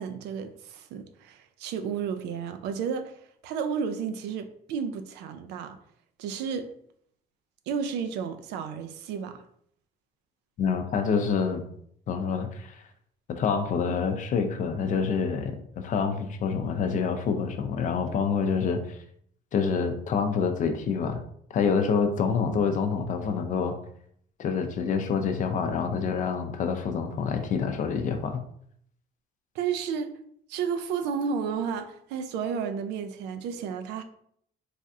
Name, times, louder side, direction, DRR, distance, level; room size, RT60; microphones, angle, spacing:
voice 1, 0.0-3.1 3.4-5.8 6.2-6.7 7.7-9.4 29.6-30.1 30.5-34.0, right 6 dB, 85° right, 0.4 m, -32 dB
voice 2, 10.6-11.6 12.1-12.8 13.3-19.0 19.5-21.2 21.5-23.7 24.4-28.4, left 5 dB, 50° left, 0.5 m, -27 dB
3.3 x 2.4 x 2.6 m
cardioid pair, 110°, 17 cm